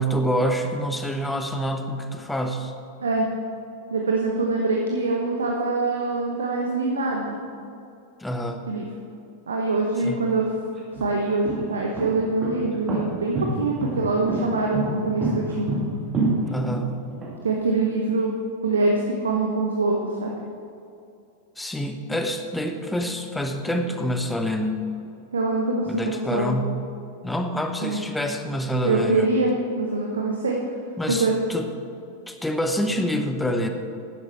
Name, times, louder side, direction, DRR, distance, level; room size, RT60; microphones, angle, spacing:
voice 1, 0.0-2.7 8.2-8.7 10.0-10.2 16.5-17.0 21.6-24.9 25.9-26.8 27.2-29.3 31.0-31.7 32.3-33.7, equal, 5° left, 5 dB, 1.0 m, -26 dB
voice 2, 3.9-7.4 8.7-8.8 9.5-10.5 11.0-15.7 17.4-18.4 18.6-20.3 25.3-26.5 27.8-28.0 28.8-30.6 31.1-31.3, right 3 dB, 70° right, 0 dB, 1.1 m, -24 dB
sound 1, 10.0-10.1 10.8-17.3, right 2 dB, 30° right, 2.2 m, -27 dB
11.5 x 10.0 x 4.4 m, 2.5 s
figure-of-eight pair, 90°, 0 cm